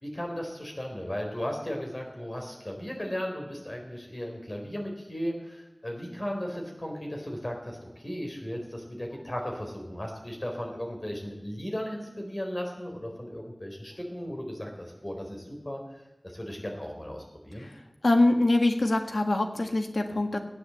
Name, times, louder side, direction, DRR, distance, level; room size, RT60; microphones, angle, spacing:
voice 1, 0.0-15.8 16.2-17.7, equal, 35° left, 1 dB, 4.2 m, -36 dB
voice 2, 18.0-20.4, left 2 dB, 80° left, 4 dB, 1.7 m, -24 dB
15.5 x 9.8 x 7.7 m, 0.99 s
wide cardioid pair, 55°, 0 cm